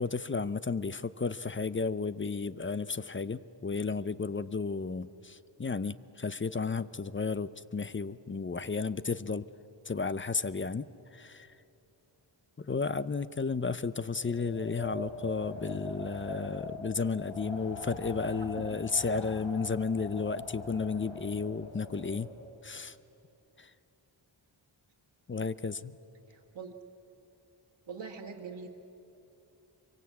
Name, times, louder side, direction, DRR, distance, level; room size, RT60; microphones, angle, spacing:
voice 1, 0.0-9.4 9.9-11.5 12.6-22.3 22.6-23.0 23.6-23.7 25.3-26.0, left 4 dB, 25° left, 16 dB, 0.6 m, -33 dB
Wind, 14.1-22.5, left 2 dB, 90° left, 4.6 m, -43 dB
voice 2, 26.3-26.8 27.9-28.7, right 5 dB, 65° right, -1 dB, 1.7 m, -43 dB
24.5 x 23.5 x 8.4 m, 2.9 s
wide cardioid pair, 95°, 47 cm